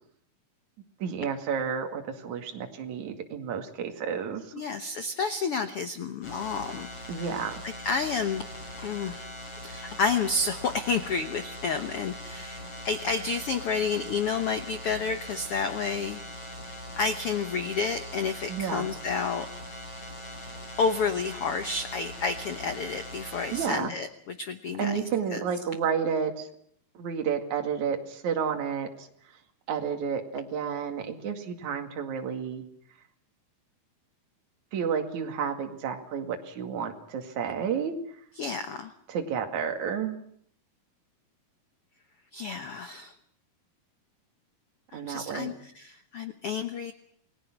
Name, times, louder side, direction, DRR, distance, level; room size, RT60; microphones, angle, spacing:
voice 1, 1.0-4.5 7.1-7.6 18.5-18.9 23.5-23.9 24.8-26.5 27.0-29.1 29.7-32.6 34.7-38.0 39.1-40.2 44.9-45.6, right 7 dB, 55° right, 4 dB, 3.4 m, -31 dB
voice 2, 4.5-6.9 7.8-8.4 8.8-9.3 9.6-16.2 17.0-19.5 20.8-24.1 24.4-25.0 25.3-25.4 38.4-38.9 42.3-43.1 44.9-46.9, left 5 dB, 85° left, 9 dB, 1.2 m, -30 dB
sound 1, 6.2-23.7, left 1 dB, 40° left, 7.4 m, -41 dB
28.5 x 20.0 x 6.1 m, 0.67 s
omnidirectional pair, 4.3 m